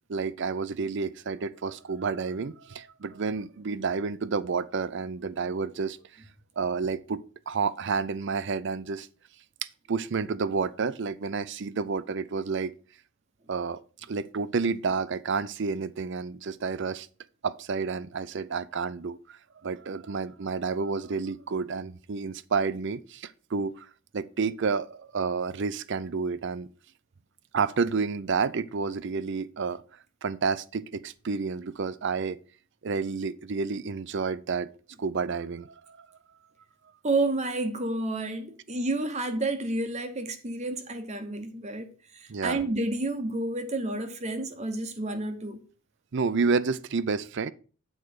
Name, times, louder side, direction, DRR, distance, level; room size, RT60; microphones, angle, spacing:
voice 1, 0.1-6.0 6.6-7.2 7.5-9.1 9.9-12.7 13.5-13.8 14.1-17.1 17.4-23.9 24.1-26.7 27.5-29.8 30.2-32.4 32.8-34.7 35.0-36.1 42.3-42.6 46.1-47.5, right 5 dB, 55° right, 0.5 m, -30 dB
voice 2, 37.0-45.6, right 2 dB, 30° right, 0.9 m, -30 dB
8.7 x 4.5 x 6.6 m
head